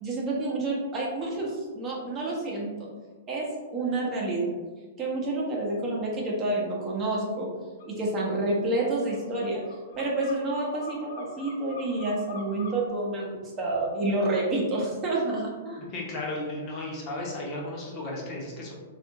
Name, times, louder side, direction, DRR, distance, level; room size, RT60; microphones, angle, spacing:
voice 1, 0.0-2.9 3.3-4.5 5.0-7.5 7.9-9.6 9.9-15.8, right 2 dB, 25° right, -4 dB, 0.8 m, -29 dB
sound 1, 7.8-7.9 8.2-12.9, left 4 dB, 60° left, 0.7 m, -45 dB
voice 2, 15.8-18.7, left 2 dB, 35° left, -3 dB, 0.8 m, -34 dB
3.4 x 2.5 x 2.8 m, 1.4 s
figure-of-eight pair, 110°, 0 cm